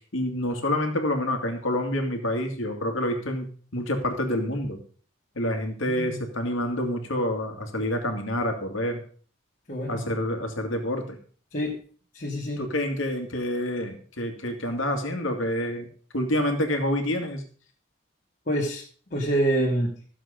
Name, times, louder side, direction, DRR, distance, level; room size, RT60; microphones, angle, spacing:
voice 1, 0.1-4.8 5.4-9.0 9.9-11.2 12.6-17.4, left 1 dB, 80° left, 4 dB, 2.3 m, -28 dB
voice 2, 5.9-6.2 9.7-10.0 11.5-11.8 12.1-12.6 18.5-18.8 19.1-20.0, right 1 dB, 40° left, -4 dB, 2.1 m, -26 dB
14.0 x 7.4 x 5.1 m, 0.44 s
head